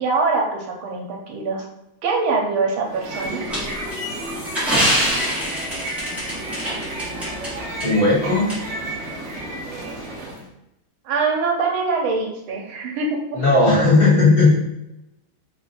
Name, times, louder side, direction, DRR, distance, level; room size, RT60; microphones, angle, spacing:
voice 1, 0.0-1.7 2.0-3.4 11.0-13.5, right 4 dB, 80° right, 1 dB, 1.5 m, -23 dB
sound 1, 2.8-10.5, right 1 dB, 55° right, 0.7 m, -32 dB
sound 2, 3.5-7.5 7.8-7.9 8.5-8.6, equal, ahead, 0.9 m, -24 dB
voice 2, 7.8-8.5 13.3-14.5, left 3 dB, 30° left, -8 dB, 1.5 m, -15 dB
4.0 x 2.5 x 3.8 m, 0.88 s
omnidirectional pair, 2.3 m